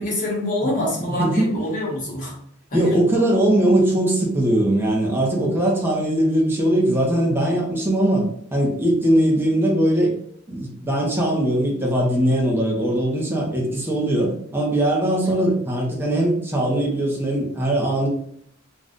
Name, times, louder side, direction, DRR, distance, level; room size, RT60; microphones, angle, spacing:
voice 1, 0.0-2.3 2.7-2.9, left 1 dB, 40° left, -5 dB, 0.9 m, -26 dB
voice 2, 1.0-1.5 2.7-10.1 10.5-18.1, right 1 dB, 10° right, -3 dB, 0.6 m, -20 dB
2.6 x 2.2 x 3.5 m, 0.68 s
head